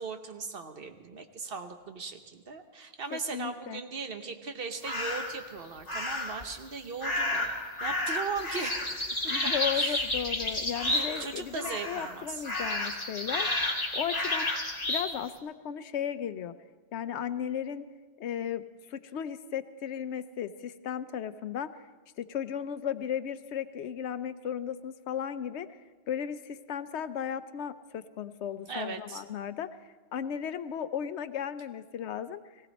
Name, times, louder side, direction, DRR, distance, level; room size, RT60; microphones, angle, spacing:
voice 1, 0.0-7.5 7.8-10.1 10.8-12.4 28.7-29.2, right 4 dB, 60° right, 6 dB, 1.3 m, -38 dB
voice 2, 3.1-3.8 9.3-13.5 13.9-14.5 14.9-16.5 16.9-17.9 18.2-18.6 18.9-21.7 22.2-25.7 26.1-29.7 30.1-32.4, left 9 dB, 90° left, 12 dB, 1.0 m, -35 dB
sound 1, 4.8-5.4 5.9-6.4 7.0-11.3 11.6-12.1 12.4-15.1, left 1 dB, 40° left, 2.4 m, -31 dB
19.0 x 17.0 x 4.1 m, 1.3 s
omnidirectional pair, 1.1 m